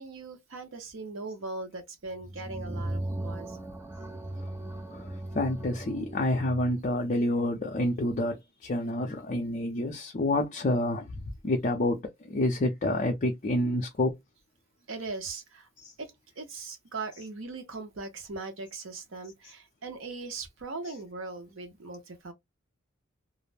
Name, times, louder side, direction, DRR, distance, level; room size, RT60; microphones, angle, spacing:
voice 1, 0.0-3.7 14.9-15.7 16.0-22.3, right 3 dB, 70° right, 0.8 m, -40 dB
sound 1, 2.1-6.8, right 1 dB, 15° right, 0.4 m, -37 dB
voice 2, 4.9-14.1 15.8-15.9, left 1 dB, 40° left, 0.5 m, -28 dB
2.4 x 2.0 x 3.2 m
head